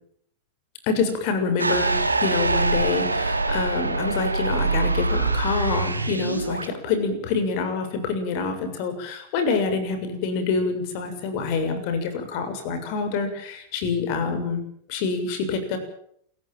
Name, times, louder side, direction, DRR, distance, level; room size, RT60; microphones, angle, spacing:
voice 1, 0.8-2.0 2.2-14.6 14.9-15.8, left 4 dB, 45° left, 8 dB, 7.0 m, -26 dB
sound 1, 1.6-6.7, right 3 dB, 80° right, 2.8 m, -24 dB
28.5 x 15.5 x 9.1 m, 0.68 s
figure-of-eight pair, 90°, 0 cm